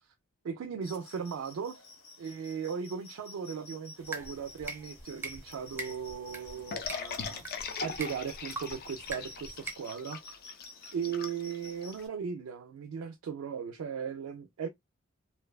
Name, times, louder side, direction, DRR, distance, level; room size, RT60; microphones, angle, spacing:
voice 1, 0.4-1.8 2.2-7.4 7.8-10.2 10.9-14.7, right 6 dB, 75° right, 0.3 m, -37 dB
sound 1, 0.8-12.1, left 2 dB, 70° left, 0.8 m, -52 dB
sound 2, 4.0-9.7, right 3 dB, 10° right, 0.4 m, -44 dB
sound 3, 6.7-12.0, left 6 dB, 45° left, 0.4 m, -40 dB
2.6 x 2.2 x 2.2 m
head